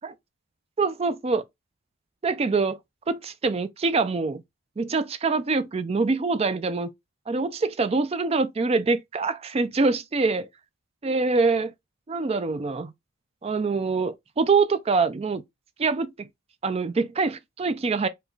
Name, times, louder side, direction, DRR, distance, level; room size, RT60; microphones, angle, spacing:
voice 1, 0.8-1.4 2.2-2.8 3.1-4.4 4.8-6.9 7.3-10.5 11.0-11.7 12.1-12.9 13.4-15.4 15.8-16.3 16.6-18.1, right 4 dB, 25° right, 0.3 m, -24 dB
5.0 x 2.2 x 3.8 m
head